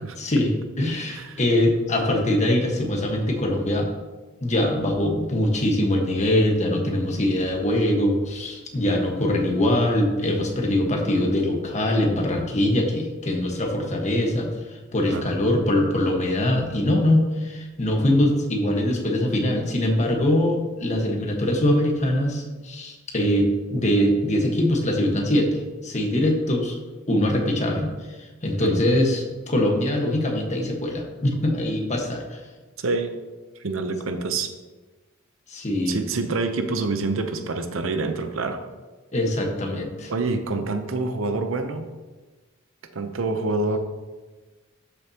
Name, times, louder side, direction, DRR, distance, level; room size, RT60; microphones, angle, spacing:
voice 1, 0.2-3.9 4.4-14.5 14.9-26.7 27.1-27.9 28.4-32.2 35.5-36.0 39.1-40.1, left 1 dB, 35° left, 1 dB, 1.4 m, -22 dB
voice 2, 1.1-1.4 15.1-15.3 28.6-28.8 32.8-33.1 33.6-34.5 35.9-38.6 40.1-41.9 42.9-43.8, right 3 dB, 70° right, 7 dB, 0.7 m, -26 dB
12.0 x 7.0 x 2.9 m, 1.3 s
head